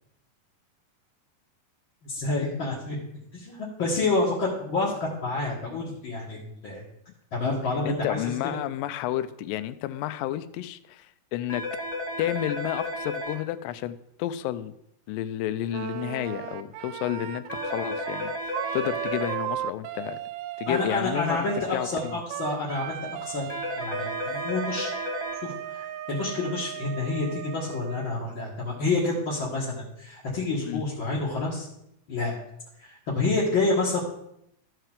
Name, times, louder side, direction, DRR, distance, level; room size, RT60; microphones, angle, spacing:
voice 1, 2.0-3.0 3.3-6.4 6.6-6.8 7.3-8.3 20.7-23.5 23.8-24.9 25.3-31.7 32.1-32.3 32.8-34.0, left 3 dB, 50° left, -5 dB, 1.7 m, -28 dB
voice 2, 7.9-11.6 12.2-14.7 15.1-20.2 20.6-21.5 21.7-22.2 30.7-30.8, left 13 dB, 85° left, 13 dB, 2.2 m, -31 dB
sound 1, 11.5-13.3 17.5-19.3 23.5-25.3, left 1 dB, 15° left, 2.4 m, -33 dB
Wind instrument woodwind instrument, 15.7-28.2, right 12 dB, 85° right, 2.2 m, -36 dB
14.5 x 5.7 x 3.6 m, 0.77 s
omnidirectional pair, 3.9 m